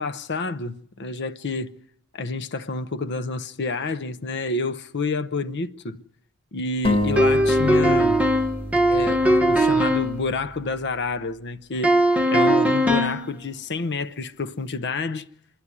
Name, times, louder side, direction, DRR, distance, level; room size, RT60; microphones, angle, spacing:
voice 1, 0.0-1.7 2.1-6.0 6.5-8.2 8.9-12.0 12.3-15.3, left 3 dB, 50° left, 0.8 m, -29 dB
sound 1, 6.8-10.5, equal, 25° left, 1.5 m, -29 dB
sound 2, 7.2-10.2 11.8-13.3, equal, 5° right, 0.9 m, -19 dB
27.0 x 11.0 x 9.7 m
head